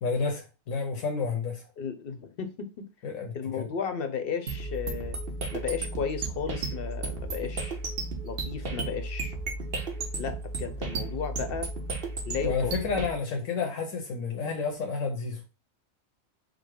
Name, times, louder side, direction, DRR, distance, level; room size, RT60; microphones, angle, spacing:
voice 1, 0.0-1.6 3.0-3.7 12.4-15.4, left 4 dB, 85° left, 1.2 m, -30 dB
voice 2, 1.8-2.9 3.3-5.2 5.5-7.8 8.2-9.3 10.2-11.7 12.3-12.7, left 6 dB, 55° left, 0.8 m, -34 dB
sound 1, 4.5-13.1, right 3 dB, 50° right, 1.1 m, -34 dB
5.1 x 2.1 x 4.7 m
omnidirectional pair, 1.4 m